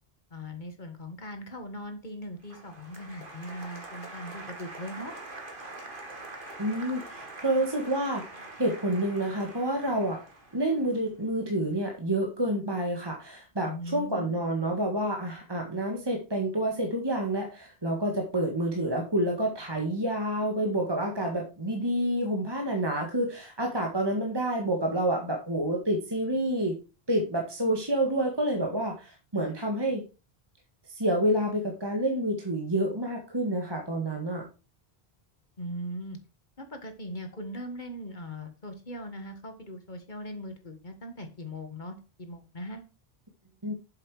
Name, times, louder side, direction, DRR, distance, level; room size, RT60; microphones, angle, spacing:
voice 1, 0.3-5.1 13.6-14.4 35.6-36.2 36.6-42.8, equal, 50° left, 6 dB, 1.8 m, -40 dB
Applause, 2.4-11.5, right 2 dB, 55° right, 2.0 m, -44 dB
voice 2, 6.6-8.2 8.6-10.2 10.5-26.8 27.1-30.0 30.9-34.5 43.6-43.7, right 1 dB, 25° right, 1 dB, 1.6 m, -28 dB
7.6 x 7.3 x 4.8 m, 0.32 s
omnidirectional pair, 1.0 m